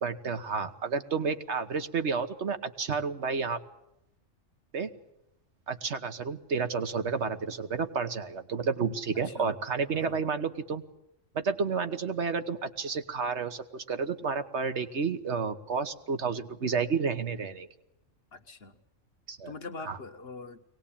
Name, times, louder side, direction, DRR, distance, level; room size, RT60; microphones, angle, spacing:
voice 1, 0.0-3.6 4.7-4.9 5.7-10.8 11.3-17.7 19.3-19.5 19.9-20.0, right 5 dB, 65° right, 9 dB, 1.6 m, -31 dB
voice 2, 9.1-9.5 9.9-10.3 18.3-18.8 19.5-20.7, left 3 dB, 55° left, 8 dB, 1.5 m, -44 dB
23.0 x 19.0 x 8.7 m, 0.84 s
omnidirectional pair, 1.3 m